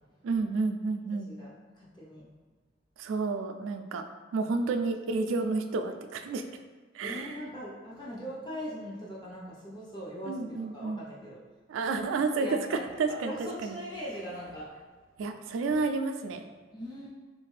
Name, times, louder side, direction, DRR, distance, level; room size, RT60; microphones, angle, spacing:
voice 1, 0.2-1.3 3.0-4.1 4.3-6.4 6.9-7.4 10.2-11.0 11.7-13.3 13.6-13.8 15.2-16.5, right 4 dB, 90° right, 7 dB, 0.3 m, -30 dB
voice 2, 1.0-2.2 7.0-11.4 11.9-14.7 16.7-17.1, equal, 25° left, -7 dB, 0.8 m, -41 dB
3.5 x 2.5 x 3.2 m, 1.4 s
head